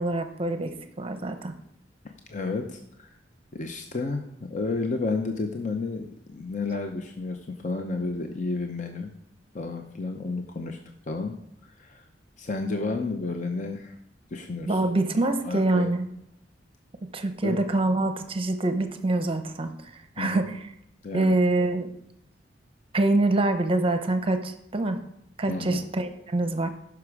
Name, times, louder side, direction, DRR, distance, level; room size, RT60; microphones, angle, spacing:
voice 1, 0.0-1.5 14.7-16.1 17.1-20.6 21.1-21.9 22.9-25.0 25.4-26.7, right 2 dB, 30° right, 8 dB, 0.7 m, -25 dB
voice 2, 2.0-3.2 3.5-9.1 9.5-10.8 11.1-11.4 11.6-12.1 12.4-14.0 14.3-14.8 15.4-15.9 17.4-17.6 20.2-20.4 21.0-21.3 25.5-25.8, left 3 dB, 45° left, 5 dB, 0.7 m, -31 dB
15.0 x 6.1 x 4.7 m, 0.78 s
head